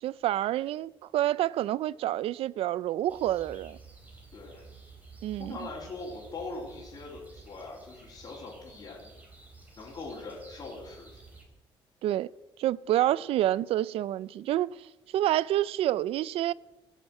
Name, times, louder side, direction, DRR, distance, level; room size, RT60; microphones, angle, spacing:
voice 1, 0.0-3.8 5.2-5.6 12.0-12.3 12.6-14.9 15.1-16.5, right 13 dB, 85° right, 0.4 m, -28 dB
sound 1, 3.1-11.4, right 3 dB, 15° right, 3.6 m, -51 dB
voice 2, 4.3-4.6 5.4-9.1 9.8-11.1 13.1-13.2, left 3 dB, 45° left, 3.6 m, -42 dB
16.5 x 7.3 x 7.7 m
cardioid pair, 140°, 10 cm